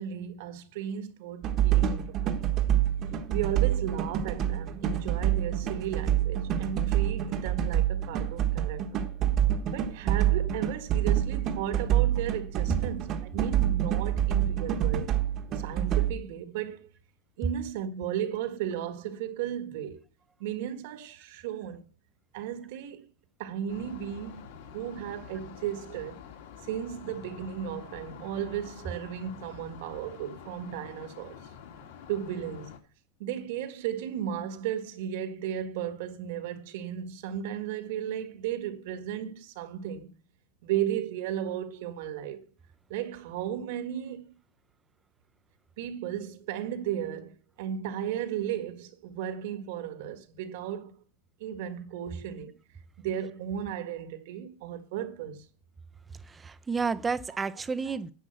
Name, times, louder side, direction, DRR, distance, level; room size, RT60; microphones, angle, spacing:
voice 1, 0.0-2.4 3.3-9.0 9.7-15.1 15.5-16.9 17.4-20.0 20.4-21.8 22.3-23.1 23.4-26.2 26.6-31.4 32.1-32.7 33.2-40.1 40.6-42.4 42.9-44.3 45.8-47.3 47.6-50.9 51.4-52.5 53.0-55.5, right 10 dB, 65° right, 1.5 m, -35 dB
sound 1, 1.4-16.1, right 11 dB, 30° right, 1.1 m, -27 dB
sound 2, 23.7-32.8, left 8 dB, 70° left, 2.2 m, -47 dB
voice 2, 56.1-58.1, right 5 dB, 10° right, 0.5 m, -31 dB
10.0 x 5.3 x 8.0 m
supercardioid pair, 170°, 0 cm